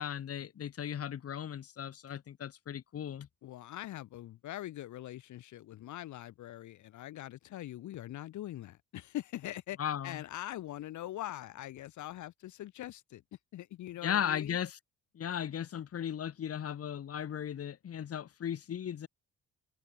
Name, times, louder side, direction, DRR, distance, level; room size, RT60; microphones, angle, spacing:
voice 1, 0.0-3.3 9.8-10.2 14.0-14.8 15.1-19.1, left 9 dB, 50° left, 1.5 m, -36 dB
voice 2, 3.4-9.8 10.0-14.6, left 14 dB, 75° left, 1.2 m, -43 dB
open air
cardioid pair, 90°, 30 cm